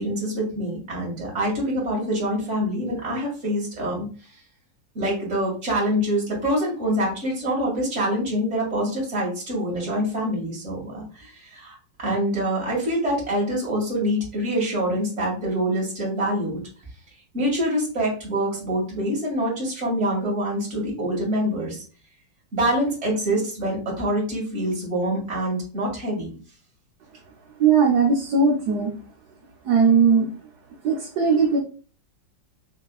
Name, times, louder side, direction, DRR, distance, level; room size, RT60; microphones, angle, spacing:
voice 1, 0.0-4.1 4.9-16.6 17.3-21.8 22.5-26.3, equal, 35° right, -3 dB, 2.4 m, -25 dB
voice 2, 27.6-28.9 29.6-30.3 30.8-31.6, right 5 dB, 60° right, -1 dB, 1.2 m, -18 dB
6.3 x 3.3 x 2.3 m, 0.39 s
omnidirectional pair, 2.2 m